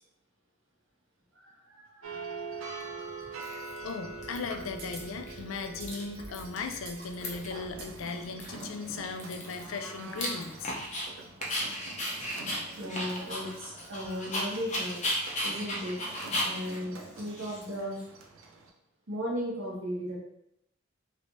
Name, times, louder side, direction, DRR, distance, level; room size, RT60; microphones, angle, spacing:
voice 1, 1.3-3.0 12.7-15.0 15.4-16.0 16.4-18.0 19.1-20.2, equal, 70° right, -4 dB, 1.1 m, -36 dB
sound 1, 2.0-18.7, right 4 dB, 90° right, 0.5 m, -45 dB
Dog, 2.7-2.8 3.4-3.9 4.2-5.0 5.3-5.4 5.6-6.7 7.0-7.6 8.0-8.1 8.4-11.1 11.4-18.0, left 1 dB, 35° left, 0.7 m, -35 dB
Thunder, 3.7-10.3, right 1 dB, 30° right, 0.5 m, -52 dB
voice 2, 3.8-10.8, left 4 dB, 75° left, 6 dB, 0.4 m, -37 dB
3.2 x 3.2 x 2.6 m, 0.81 s
head